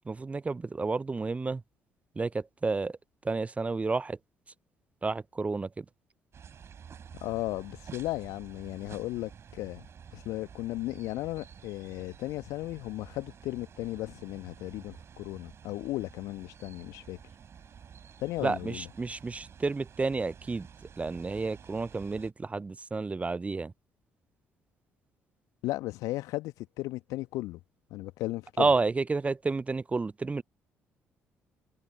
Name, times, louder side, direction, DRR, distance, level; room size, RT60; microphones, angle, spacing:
voice 1, 0.0-1.6 2.2-3.0 3.2-4.2 5.0-5.8 18.4-20.7 21.0-23.7 28.6-30.4, right 3 dB, 20° right, 0.5 m, -30 dB
sound 1, 6.3-22.3, right 7 dB, 45° right, 7.9 m, -51 dB
voice 2, 7.2-9.8 10.1-17.2 18.2-18.9 25.6-27.6 27.9-28.7, left 18 dB, 65° left, 1.4 m, -35 dB
figure-of-eight pair, 45°, 6 cm